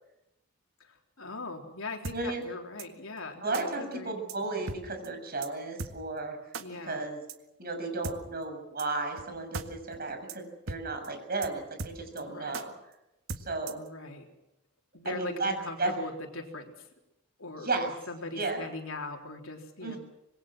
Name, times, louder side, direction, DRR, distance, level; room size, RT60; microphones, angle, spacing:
voice 1, 0.8-4.2 4.6-4.7 6.6-7.1 12.2-12.7 13.7-14.3 14.9-16.9 17.4-20.0, left 2 dB, 70° left, 3 dB, 3.8 m, -40 dB
sound 1, 2.0-2.2 2.8-2.9 3.5-3.6 4.3-4.4 4.7-4.8 5.0-5.1 5.4-5.5 5.8-5.9 6.5-6.6 7.3-7.4 8.0-8.2 8.8-8.9 9.2-9.3 9.5-9.7 9.9-10.0 10.3-10.4 10.7-10.8 11.0-11.1 11.4-11.5 11.8-12.2 12.5-12.6 13.3-13.9, right 3 dB, 65° right, 1.8 m, -37 dB
voice 2, 2.1-2.4 3.4-6.4 6.9-7.2 7.6-12.7 13.4-13.8 15.1-15.5 15.8-15.9 17.6-17.9 18.3-18.7 19.8-20.0, right 3 dB, 45° right, 5 dB, 6.8 m, -34 dB
26.5 x 21.5 x 6.3 m, 0.91 s
head